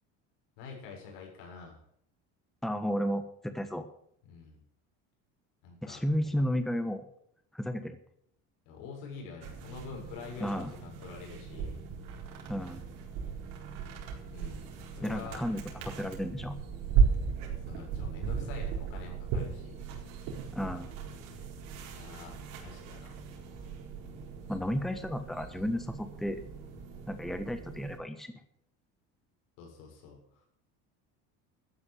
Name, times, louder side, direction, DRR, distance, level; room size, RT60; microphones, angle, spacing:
voice 1, 0.6-1.8 4.2-4.6 5.6-6.0 6.4-6.5 8.6-11.8 14.3-15.5 17.5-19.8 21.9-23.2 29.6-30.4, left 5 dB, 85° left, 1 dB, 7.0 m, -46 dB
voice 2, 2.6-3.9 5.8-7.0 7.5-8.0 10.4-10.7 12.5-12.8 15.0-16.6 20.5-20.9 24.5-26.4 27.1-28.3, equal, ahead, 9 dB, 1.3 m, -33 dB
sound 1, 9.4-28.0, right 6 dB, 75° right, 4.5 m, -36 dB
13.5 x 9.5 x 7.6 m, 0.68 s
cardioid pair, 120°, 32 cm